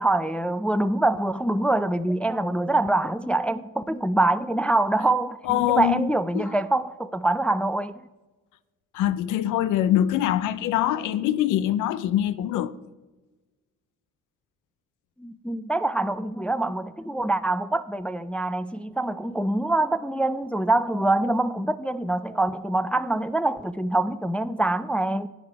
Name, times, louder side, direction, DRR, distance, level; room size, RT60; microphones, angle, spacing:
voice 1, 0.0-8.1 15.2-25.3, right 2 dB, 5° left, 0.3 m, -25 dB
voice 2, 5.5-6.1 6.3-6.5 8.9-12.7, left 12 dB, 85° left, 0.6 m, -23 dB
12.0 x 8.1 x 4.7 m
cardioid pair, 90°, 30 cm